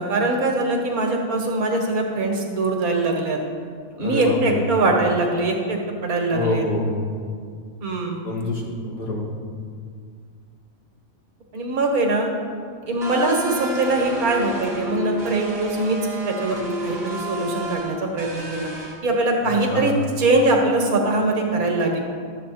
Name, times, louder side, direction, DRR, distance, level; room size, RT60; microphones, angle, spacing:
voice 1, 0.0-3.4 4.0-6.6 7.8-8.2 11.5-12.3 12.9-16.0 16.2-18.7 19.0-22.0, right 2 dB, 90° right, 2 dB, 1.8 m, -22 dB
voice 2, 4.0-4.6 6.3-7.1 8.2-9.3 19.7-19.9, left 2 dB, 75° left, -5 dB, 2.6 m, -26 dB
sound 1, 13.0-18.9, equal, 35° right, 1.8 m, -31 dB
12.5 x 7.6 x 4.3 m, 2.1 s
omnidirectional pair, 1.5 m